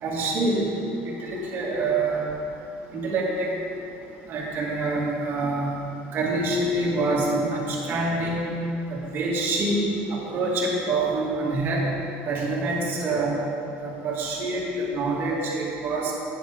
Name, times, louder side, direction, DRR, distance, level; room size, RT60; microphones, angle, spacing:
voice 1, 0.0-0.7 1.0-2.3 2.9-3.6 4.3-5.7 6.1-8.5 8.9-9.8 10.1-11.8 12.2-13.4 13.8-16.1, right 2 dB, 45° right, -4 dB, 2.3 m, -26 dB
10.5 x 9.0 x 3.6 m, 2.8 s
supercardioid pair, 115°, 5 cm